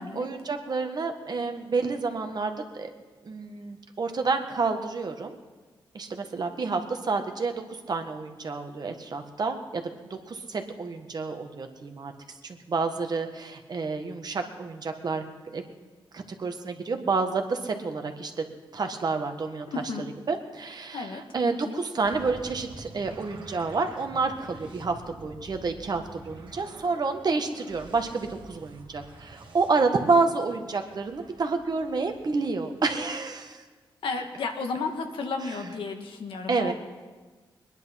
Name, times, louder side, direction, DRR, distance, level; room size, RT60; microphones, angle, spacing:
voice 1, 0.1-2.9 3.2-5.3 5.9-12.1 12.4-15.6 16.1-18.4 18.7-19.7 20.0-33.6 35.4-35.6 36.5-36.7, right 4 dB, 50° right, 5 dB, 1.6 m, -29 dB
voice 2, 19.7-20.1 20.9-21.2 21.6-21.8 34.0-36.7, left 4 dB, 85° left, 4 dB, 1.6 m, -33 dB
sound 1, 22.0-33.2, right 2 dB, 65° right, 2.4 m, -48 dB
21.0 x 10.5 x 5.8 m, 1.3 s
cardioid pair, 75°, 9 cm